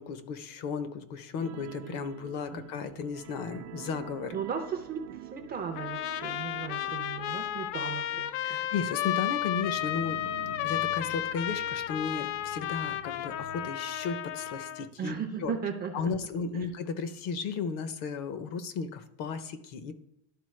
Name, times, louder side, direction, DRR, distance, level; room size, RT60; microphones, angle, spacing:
voice 1, 0.0-4.4 8.4-15.5 15.9-19.9, left 5 dB, 50° left, 12 dB, 0.7 m, -35 dB
sound 1, 1.4-14.6 14.9-15.1 15.5-15.6, right 9 dB, 75° right, 0.7 m, -48 dB
voice 2, 4.3-8.6 15.0-16.1 16.5-16.7, right 7 dB, 25° right, 4 dB, 0.4 m, -36 dB
Trumpet, 5.8-14.9, left 12 dB, 90° left, 0.6 m, -33 dB
11.5 x 4.1 x 3.2 m, 0.85 s
cardioid pair, 180°, 43 cm